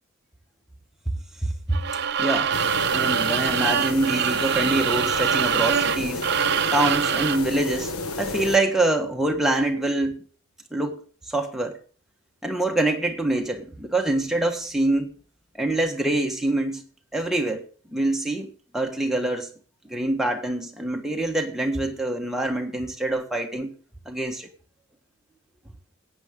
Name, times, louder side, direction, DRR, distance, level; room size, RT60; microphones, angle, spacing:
voice 1, 1.4-1.8 2.2-2.5 2.9-6.3 6.7-10.2 10.7-11.0 11.3-11.8 12.4-15.1 15.6-16.8 17.1-17.6 17.9-19.5 19.9-23.7 24.0-24.5, right 2 dB, ahead, 1.5 m, -25 dB
sound 1, 1.7-7.5, right 8 dB, 50° right, 0.6 m, -24 dB
sound 2, 2.5-8.6, left 3 dB, 85° left, 1.1 m, -32 dB
15.0 x 9.2 x 5.3 m
head